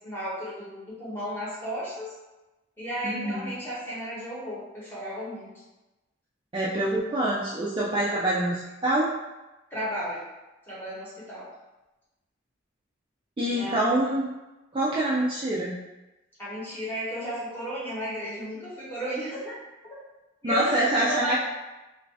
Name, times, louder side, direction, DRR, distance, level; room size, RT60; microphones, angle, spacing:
voice 1, 0.0-2.1 2.8-5.5 9.7-10.2 10.7-11.5 13.4-13.9 16.4-19.5 20.4-21.4, equal, 10° left, -9 dB, 1.2 m, -34 dB
voice 2, 3.0-3.5 6.5-9.1 13.4-14.3 14.7-15.8 20.4-21.4, right 1 dB, 25° right, -7 dB, 0.4 m, -25 dB
3.0 x 2.7 x 3.3 m, 1.1 s
head